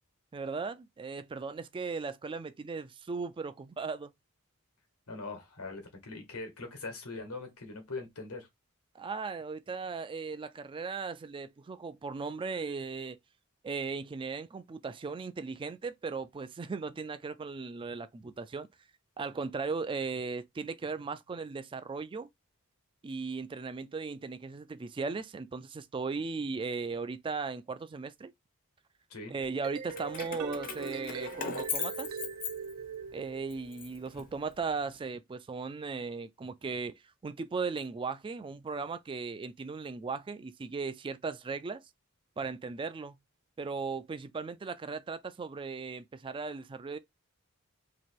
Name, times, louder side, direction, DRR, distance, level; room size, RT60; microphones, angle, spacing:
voice 1, 0.3-4.1 8.9-13.2 13.6-18.7 19.2-22.3 23.0-28.3 29.3-32.2 33.1-36.9 37.2-41.8 42.4-43.2 43.6-47.0, right 4 dB, 25° right, 0.3 m, -37 dB
voice 2, 5.1-8.5 29.1-29.3, left 3 dB, 85° left, 1.3 m, -41 dB
sound 1, 29.4-33.8, right 5 dB, 80° right, 0.6 m, -40 dB
Keys jangling, 29.9-33.1 33.5-34.8, left 6 dB, 40° left, 0.7 m, -39 dB
3.0 x 2.8 x 4.4 m
head